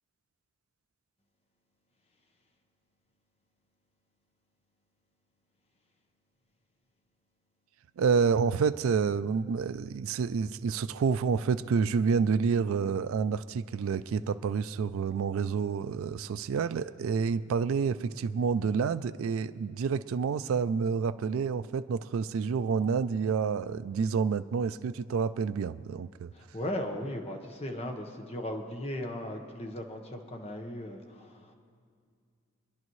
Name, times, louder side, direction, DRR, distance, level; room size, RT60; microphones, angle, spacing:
voice 1, 8.0-26.3, right 5 dB, 75° right, 11 dB, 0.3 m, -28 dB
voice 2, 26.3-31.5, left 1 dB, 30° left, 4 dB, 1.1 m, -37 dB
25.0 x 10.5 x 3.1 m, 2.2 s
head